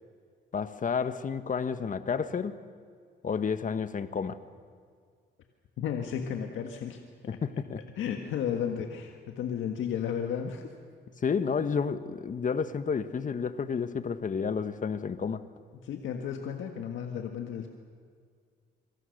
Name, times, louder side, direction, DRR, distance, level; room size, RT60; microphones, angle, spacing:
voice 1, 0.5-2.5 3.2-4.4 7.2-7.8 11.2-15.4, left 6 dB, 40° left, 11 dB, 1.3 m, -30 dB
voice 2, 5.8-7.0 8.0-10.7 15.8-17.7, left 8 dB, 80° left, 4 dB, 1.7 m, -33 dB
26.5 x 24.0 x 6.6 m, 2.1 s
cardioid pair, 90°, 20 cm